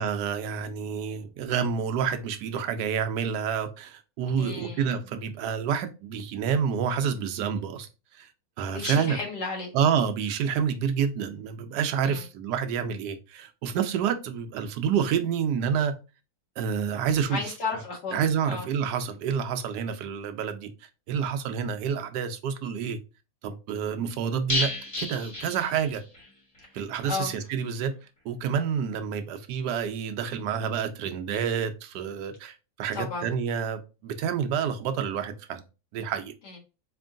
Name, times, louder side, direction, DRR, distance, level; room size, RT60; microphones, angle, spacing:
voice 1, 0.0-7.9 8.2-8.3 8.6-9.2 9.7-15.9 16.6-17.5 18.1-20.7 21.1-23.0 23.4-24.7 25.0-26.0 26.7-27.9 28.2-35.6 35.9-36.3, right 7 dB, 75° right, 1.2 m, -28 dB
voice 2, 4.4-4.9 8.6-9.7 12.0-12.2 17.3-18.2 18.5-18.7 27.0-27.3 32.9-33.3 36.4-36.6, left 4 dB, 70° left, 2.1 m, -33 dB
sound 1, 24.5-26.3 26.6-26.7 27.0-27.1, left 2 dB, 25° left, 1.0 m, -31 dB
4.4 x 3.0 x 2.5 m
omnidirectional pair, 1.8 m